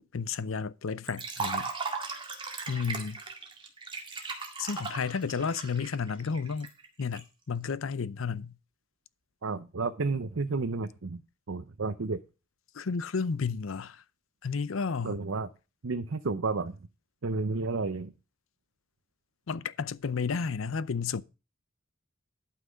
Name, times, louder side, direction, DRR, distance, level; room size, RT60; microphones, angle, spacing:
voice 1, 0.1-1.7 2.7-3.2 4.6-6.7 7.0-8.5 12.7-14.0 14.4-15.2 19.5-21.2, left 5 dB, 85° left, 0.6 m, -32 dB
Liquid, 1.1-7.2, right 4 dB, 25° right, 1.9 m, -37 dB
voice 2, 9.4-11.2 11.5-12.2 15.0-15.5 15.8-16.8 17.2-18.1, right 3 dB, 80° right, 0.7 m, -31 dB
11.5 x 5.9 x 5.1 m
head